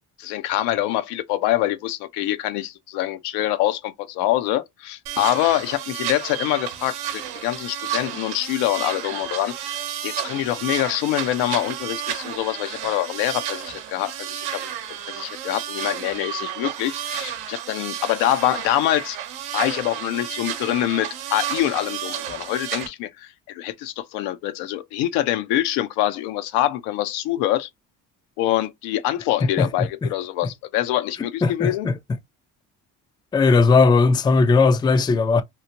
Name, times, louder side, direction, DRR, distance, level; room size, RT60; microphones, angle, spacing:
voice 1, 0.2-14.7 15.1-19.2 19.5-27.7 28.4-31.9, left 13 dB, 85° left, 0.6 m, -25 dB
sound 1, 5.1-22.9, right 10 dB, 75° right, 0.8 m, -32 dB
voice 2, 31.4-31.9 33.3-35.4, left 4 dB, 10° left, 0.3 m, -17 dB
3.0 x 2.5 x 2.8 m
supercardioid pair, 85°, 39 cm